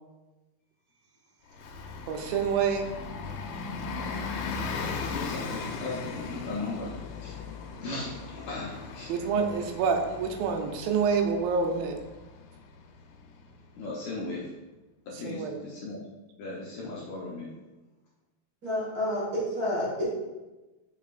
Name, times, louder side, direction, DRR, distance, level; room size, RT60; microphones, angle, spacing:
Bus, 1.5-13.8, left 4 dB, 90° left, 2.4 m, -38 dB
voice 1, 2.1-2.9 9.1-12.0 15.1-15.6, right 5 dB, 85° right, 4 dB, 2.4 m, -27 dB
voice 2, 5.1-7.4 7.8-9.1 13.8-14.5 15.1-16.0 16.4-17.5, left 2 dB, 70° left, -4 dB, 1.8 m, -37 dB
voice 3, 18.6-20.1, left 1 dB, 40° right, -6 dB, 1.4 m, -29 dB
7.1 x 5.6 x 2.5 m, 1.1 s
omnidirectional pair, 4.1 m